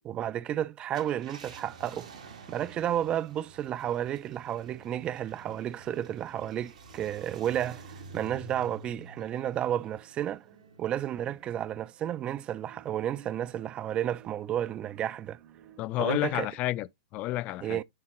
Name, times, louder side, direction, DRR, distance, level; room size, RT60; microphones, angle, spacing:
voice 1, 0.0-2.1 2.5-10.5 10.8-15.4 16.0-16.5 17.6-17.8, right 11 dB, 30° right, 0.3 m, -32 dB
Car, 0.8-11.6 12.1-12.2 14.2-14.5, right 3 dB, 85° right, 2.1 m, -50 dB
sound 1, 3.3-16.2, right 9 dB, 50° right, 1.1 m, -59 dB
voice 2, 15.8-17.8, left 17 dB, 40° left, 0.4 m, -31 dB
9.7 x 3.7 x 2.9 m
hypercardioid pair, 120°, 4 cm